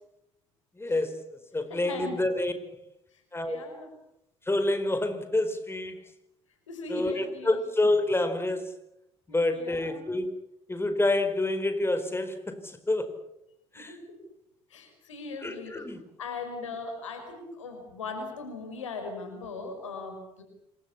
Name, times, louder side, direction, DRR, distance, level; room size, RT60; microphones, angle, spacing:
voice 1, 0.7-2.8 3.3-3.6 4.4-6.0 6.9-8.7 9.3-10.3 10.7-13.2 13.7-14.0 15.4-16.0, left 2 dB, 15° left, 9 dB, 4.7 m, -28 dB
voice 2, 1.7-2.2 3.4-3.9 6.7-7.6 9.5-10.0 13.8-14.2 14.7-15.7 16.2-20.4, left 3 dB, 80° left, 6 dB, 5.4 m, -38 dB
27.5 x 24.0 x 7.2 m, 0.82 s
figure-of-eight pair, 50°, 16 cm